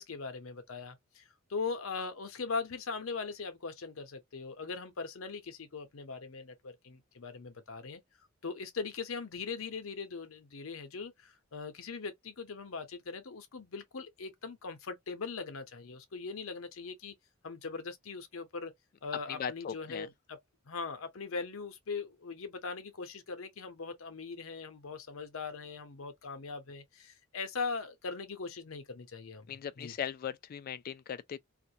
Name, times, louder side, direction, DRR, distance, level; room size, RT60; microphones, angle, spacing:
voice 1, 0.0-8.0 8.4-17.1 17.4-18.7 19.0-20.4 20.7-29.9, left 4 dB, 80° left, 0.7 m, -40 dB
voice 2, 19.3-20.1 29.5-31.4, left 8 dB, 45° left, 0.3 m, -39 dB
2.5 x 2.2 x 2.7 m
head